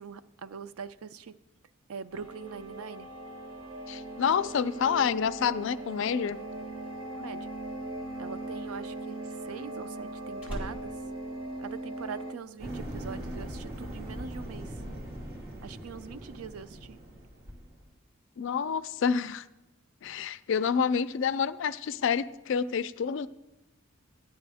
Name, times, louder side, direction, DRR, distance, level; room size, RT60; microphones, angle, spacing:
voice 1, 0.0-1.3 1.9-3.1 7.1-7.5 8.2-10.9 11.6-14.7 15.6-17.0, right 6 dB, 90° right, 14 dB, 0.4 m, -42 dB
sound 1, 2.1-12.3, right 2 dB, 70° right, 1.1 m, -40 dB
voice 2, 3.9-6.4 18.4-19.4 20.0-23.3, left 7 dB, 60° left, 14 dB, 0.4 m, -28 dB
Slam, 8.1-12.2 12.5-12.9, equal, 5° right, 2.1 m, -44 dB
sound 2, 12.6-17.9, right 1 dB, 45° right, 2.2 m, -40 dB
13.0 x 9.8 x 3.5 m, 0.99 s
head